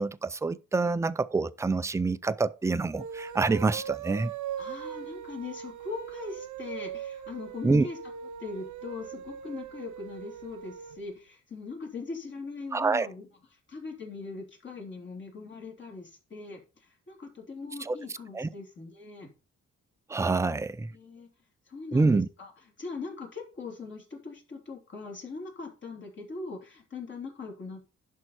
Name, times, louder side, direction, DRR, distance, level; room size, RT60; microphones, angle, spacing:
voice 1, 0.0-4.3 7.6-7.9 12.7-13.1 17.8-18.0 18.3-18.5 20.1-20.9 21.9-22.3, right 3 dB, 10° right, 0.4 m, -26 dB
sound 1, 2.9-11.0, right 9 dB, 85° right, 0.9 m, -40 dB
voice 2, 4.6-8.0 8.4-13.3 13.7-19.3 20.5-21.3 21.7-22.5 22.8-27.9, left 4 dB, 40° left, 3.3 m, -41 dB
11.0 x 5.5 x 4.2 m
wide cardioid pair, 160°, 29 cm